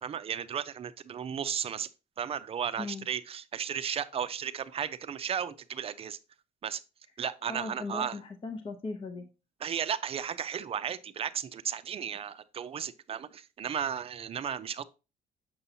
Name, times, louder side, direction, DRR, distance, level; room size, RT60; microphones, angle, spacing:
voice 1, 0.0-1.9 2.2-6.2 6.6-6.8 7.2-8.2 9.6-14.8, right 8 dB, 35° right, 0.5 m, -34 dB
voice 2, 7.5-9.3, left 3 dB, 30° left, 0.7 m, -38 dB
6.9 x 5.5 x 2.7 m
cardioid pair, 110°, 17 cm